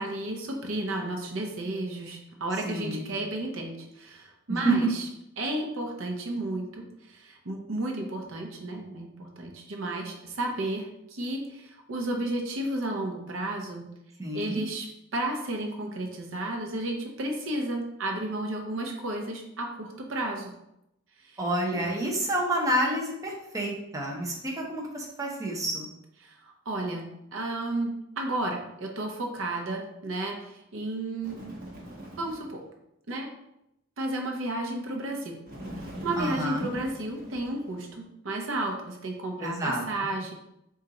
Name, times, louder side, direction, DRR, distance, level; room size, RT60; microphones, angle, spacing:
voice 1, 0.0-5.1 5.4-13.8 14.3-14.9 15.1-20.5 21.2-21.4 21.7-22.2 26.2-31.4 32.2-32.6 33.1-33.3 34.0-35.4 35.8-40.3, right 1 dB, 75° right, 2 dB, 0.7 m, -33 dB
voice 2, 2.6-3.1 4.5-4.8 14.2-14.6 21.4-25.9 36.2-36.7 39.4-40.1, right 1 dB, 15° right, -2 dB, 0.7 m, -29 dB
Bird, 31.2-32.6 35.5-38.0, equal, 45° right, 1.0 m, -42 dB
4.2 x 2.5 x 3.8 m, 0.84 s
head